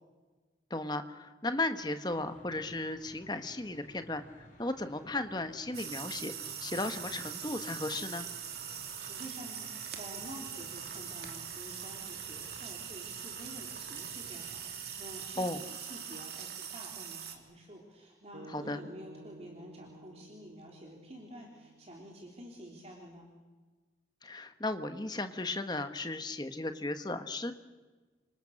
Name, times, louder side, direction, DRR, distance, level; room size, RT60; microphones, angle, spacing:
voice 1, 0.7-6.3 6.6-8.3 15.4-15.6 18.5-18.8 24.2-27.5, left 2 dB, 20° left, 9 dB, 1.3 m, -35 dB
sound 1, 2.1-15.3, left 1 dB, 45° left, 5.3 m, -56 dB
sound 2, 5.7-17.4, right 8 dB, 55° right, 2.8 m, -42 dB
voice 2, 9.0-23.3, equal, 35° right, -1 dB, 3.3 m, -49 dB
sound 3, 18.3-22.6, right 2 dB, 80° right, 1.7 m, -53 dB
28.0 x 25.5 x 6.5 m, 1.3 s
head